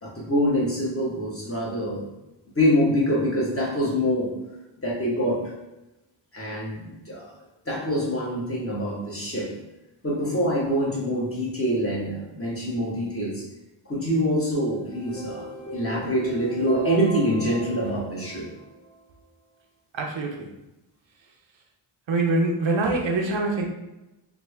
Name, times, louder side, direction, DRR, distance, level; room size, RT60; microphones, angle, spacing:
voice 1, 0.0-2.0 2.5-4.3 4.8-5.5 6.3-7.3 7.7-9.6 10.0-13.4 13.9-18.5, equal, 30° left, -5 dB, 1.2 m, -25 dB
sound 1, 14.7-19.0, right 2 dB, 10° left, 0.7 m, -38 dB
voice 2, 19.9-20.5 22.1-23.6, right 2 dB, 70° right, 1 dB, 0.7 m, -24 dB
3.4 x 2.3 x 3.2 m, 0.96 s
cardioid pair, 65°, 48 cm